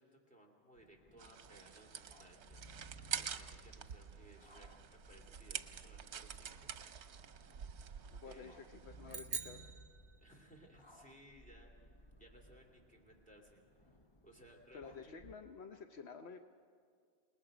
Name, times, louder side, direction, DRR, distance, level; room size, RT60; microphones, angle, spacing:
voice 1, 0.0-2.9 3.2-6.7 8.2-8.6 10.2-13.6 14.2-15.1, right 1 dB, 5° left, 1 dB, 2.8 m, -62 dB
sound 1, 0.8-15.3, right 1 dB, 30° left, 0.7 m, -61 dB
sound 2, 1.2-9.2, right 8 dB, 80° right, 1.0 m, -47 dB
voice 2, 8.1-9.7 14.7-16.4, left 5 dB, 70° left, 7 dB, 1.0 m, -51 dB
sound 3, 9.1-10.7, right 6 dB, 55° right, 1.0 m, -45 dB
28.0 x 19.5 x 5.0 m, 2.1 s
omnidirectional pair, 1.1 m